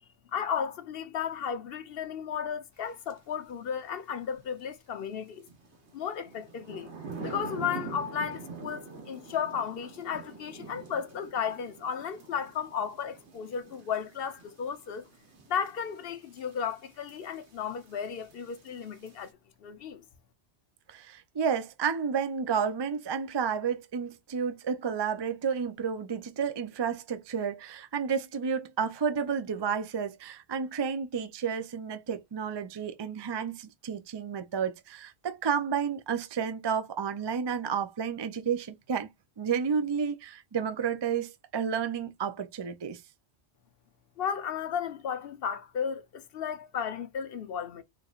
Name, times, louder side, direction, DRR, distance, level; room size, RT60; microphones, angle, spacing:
voice 1, 0.3-5.5 5.9-6.9 7.2-15.1 15.5-19.3 19.6-20.0 44.2-47.8, left 7 dB, 65° left, 0.9 m, -34 dB
sound 1, 3.1-3.2 5.5-19.3, right 4 dB, 85° right, 1.3 m, -45 dB
voice 2, 20.9-39.1 39.4-43.0, right 6 dB, 45° right, 0.3 m, -31 dB
3.7 x 3.2 x 2.4 m
omnidirectional pair, 1.1 m